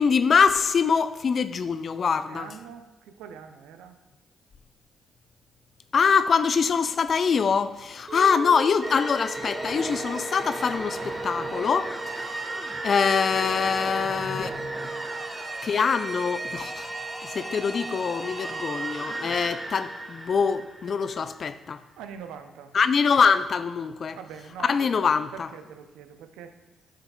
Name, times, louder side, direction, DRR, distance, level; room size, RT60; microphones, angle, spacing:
voice 1, 0.0-2.5 5.9-12.4 12.8-14.5 15.6-16.9 17.2-21.8 22.7-24.2 24.6-25.5, left 6 dB, 55° left, 12 dB, 0.3 m, -24 dB
voice 2, 2.3-4.0 13.9-15.1 22.0-22.8 24.1-24.9 25.3-26.6, right 7 dB, 75° right, 8 dB, 0.5 m, -44 dB
Chink clink, 8.1-12.3, right 3 dB, 40° right, 1.4 m, -41 dB
sound 1, 8.8-21.3, right 2 dB, 20° right, 1.1 m, -34 dB
9.8 x 5.4 x 2.3 m, 1.0 s
hypercardioid pair, 40°, 0 cm